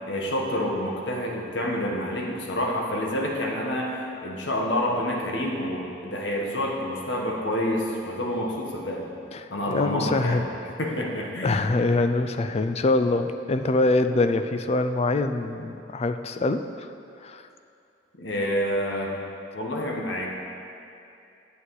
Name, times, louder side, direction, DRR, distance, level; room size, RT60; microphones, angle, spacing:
voice 1, 0.1-3.9 4.2-9.1 9.5-10.4 10.8-11.6 18.2-19.1 19.5-20.3, left 1 dB, 75° left, -1 dB, 1.3 m, -28 dB
voice 2, 9.3-10.5 11.4-16.9 17.2-17.4, left 2 dB, 35° left, 9 dB, 0.4 m, -24 dB
8.3 x 8.3 x 4.8 m, 2.7 s
head